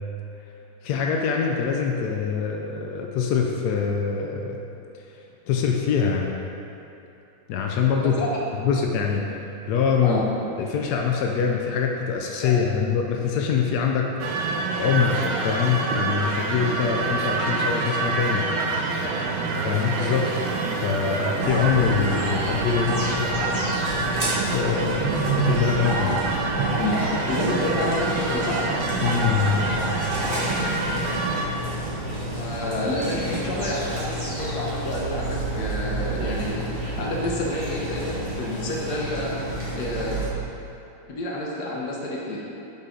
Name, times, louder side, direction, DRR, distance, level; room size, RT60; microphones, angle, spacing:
voice 1, 0.8-4.6 5.5-6.4 7.5-8.1 8.6-9.3 9.7-10.2 10.6-14.1 14.7-15.2 15.4-18.5 19.6-20.2 20.8-23.5 24.5-26.4 29.0-29.6, left 6 dB, 80° left, 1 dB, 0.9 m, -24 dB
voice 2, 8.0-8.3 10.0-10.3 12.4-12.7 19.0-19.3 26.7-28.6 30.3-30.5 32.3-39.3 39.7-40.2 41.1-42.4, left 1 dB, 55° left, -3 dB, 1.4 m, -29 dB
sound 1, 14.2-31.5, right 3 dB, 85° right, 1.5 m, -26 dB
sound 2, 15.7-34.7, right 1 dB, 40° right, 1.9 m, -42 dB
sound 3, 21.4-40.3, right 1 dB, 25° right, 1.4 m, -30 dB
7.9 x 4.1 x 3.8 m, 2.9 s
omnidirectional pair, 2.3 m